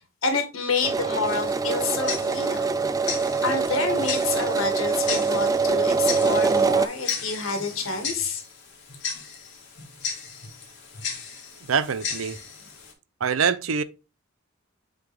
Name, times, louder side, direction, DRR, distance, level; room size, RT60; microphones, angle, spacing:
voice 1, 0.0-2.8 3.4-8.4, left 4 dB, 80° left, 1.8 m, -28 dB
sound 1, 0.8-6.9, right 4 dB, 15° right, 0.3 m, -24 dB
Tick-tock, 1.2-12.9, left 6 dB, 60° left, 2.2 m, -36 dB
voice 2, 11.7-12.4 13.2-13.8, right 6 dB, 90° right, 0.6 m, -24 dB
7.7 x 3.9 x 3.5 m
head